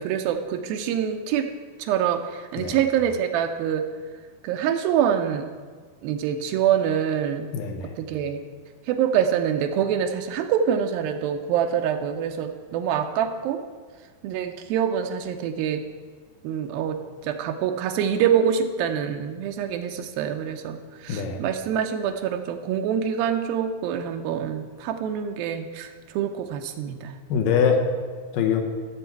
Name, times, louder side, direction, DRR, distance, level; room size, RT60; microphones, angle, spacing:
voice 1, 0.0-1.5 1.8-3.9 4.4-5.5 6.0-7.5 8.0-8.4 8.9-13.6 14.2-15.8 16.4-27.2, right 8 dB, 85° right, 5 dB, 2.5 m, -25 dB
voice 2, 7.5-7.9 21.1-21.4 27.3-27.8 28.3-28.6, left 7 dB, 75° left, 4 dB, 2.4 m, -23 dB
15.0 x 7.1 x 4.6 m, 1.5 s
omnidirectional pair, 4.2 m